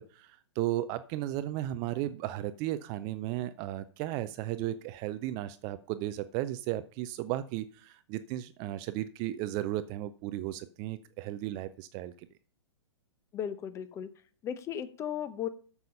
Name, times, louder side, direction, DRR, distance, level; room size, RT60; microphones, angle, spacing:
voice 1, 0.0-12.1, right 14 dB, 25° right, 13 dB, 0.4 m, -35 dB
voice 2, 13.3-14.1 14.4-15.5, left 9 dB, 20° left, 13 dB, 0.9 m, -36 dB
9.2 x 6.9 x 5.4 m, 0.41 s
figure-of-eight pair, 110°, 15 cm